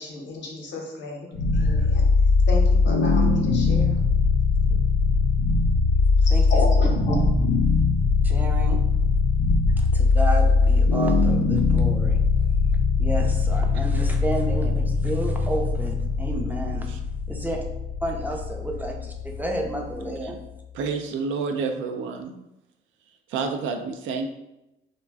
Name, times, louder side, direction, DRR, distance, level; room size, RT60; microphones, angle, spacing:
voice 1, 0.0-2.0 2.5-4.0 6.2-7.2, left 2 dB, 65° left, 0 dB, 0.8 m, -32 dB
sound 1, 1.3-20.4, left 4 dB, 90° left, 0.4 m, -21 dB
voice 2, 6.3-6.6 8.2-8.8 9.8-12.2 13.0-16.9 17.3-17.6 18.0-20.4, right 1 dB, 10° right, 1 dB, 0.4 m, -31 dB
voice 3, 20.7-22.4 23.3-24.3, right 4 dB, 80° right, 4 dB, 0.4 m, -29 dB
2.4 x 2.1 x 3.4 m, 0.92 s
cardioid pair, 90°, 20 cm